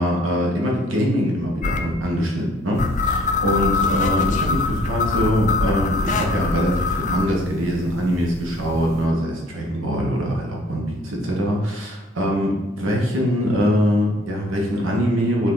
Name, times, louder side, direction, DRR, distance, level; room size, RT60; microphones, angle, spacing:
voice 1, 0.0-15.5, equal, 85° right, -2 dB, 1.4 m, -23 dB
sound 1, 1.6-1.8 2.8-7.3, left 4 dB, 40° left, 0.5 m, -23 dB
sound 2, 2.7-9.1, left 1 dB, 15° right, 1.4 m, -36 dB
6.5 x 4.2 x 4.0 m, 1.1 s
head